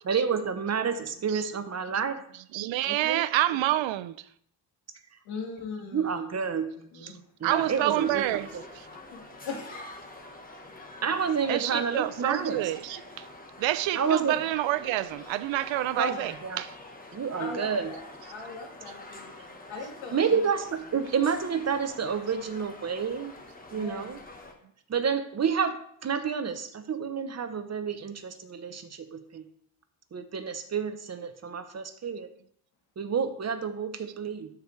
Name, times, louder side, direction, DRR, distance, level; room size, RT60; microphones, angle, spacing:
voice 1, 0.1-2.2 2.8-3.2 5.1-5.2 5.9-6.7 7.4-8.2 8.5-8.6 11.0-12.6 14.0-14.4 15.9-16.6 17.1-17.9 20.1-23.3 23.7-24.2 24.9-29.4 30.1-32.3 33.0-34.5, right 6 dB, 35° right, 0.7 m, -29 dB
voice 2, 2.5-4.1 7.4-8.5 11.5-13.3 13.6-16.7, right 14 dB, 75° right, 0.5 m, -28 dB
voice 3, 5.3-6.5 6.8-7.2 9.1-9.9 17.4-20.5 23.7-24.1, left 4 dB, 80° left, 1.9 m, -40 dB
sound 1, 7.5-24.5, left 2 dB, 20° left, 1.2 m, -46 dB
12.0 x 4.8 x 3.2 m
cardioid pair, 120°, 46 cm